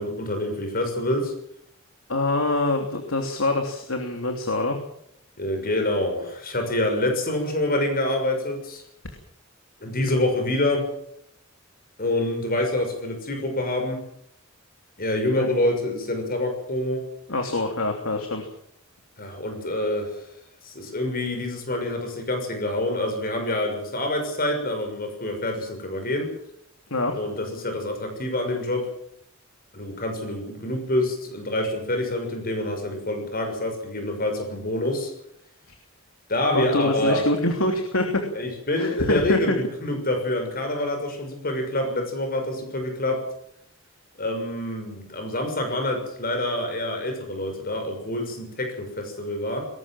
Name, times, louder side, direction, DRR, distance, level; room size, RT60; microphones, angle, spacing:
voice 1, 0.0-1.3 5.4-8.8 9.8-10.9 12.0-14.0 15.0-17.0 19.2-20.3 20.6-26.3 27.1-28.9 29.7-35.1 36.3-37.2 38.3-43.2 44.2-49.7, left 1 dB, 45° left, 5 dB, 6.4 m, -26 dB
voice 2, 2.1-4.8 15.4-15.5 17.3-18.5 26.9-27.2 36.5-38.2 38.8-39.5, left 2 dB, 80° left, 3 dB, 3.1 m, -25 dB
20.5 x 18.5 x 7.5 m, 0.71 s
head